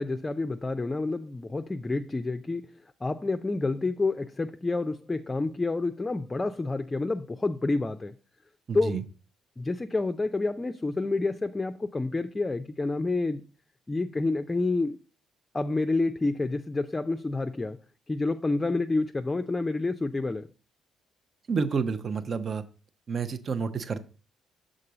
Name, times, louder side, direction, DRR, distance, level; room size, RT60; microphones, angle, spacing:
voice 1, 0.0-2.7 3.0-8.1 8.7-9.0 9.6-13.4 13.9-15.0 15.5-17.8 18.1-20.5, left 3 dB, 25° left, 0.4 m, -28 dB
voice 2, 8.7-9.0 21.5-22.6 23.1-24.1, right 5 dB, 50° right, 0.7 m, -29 dB
6.6 x 3.8 x 5.0 m
hypercardioid pair, 50°, 0 cm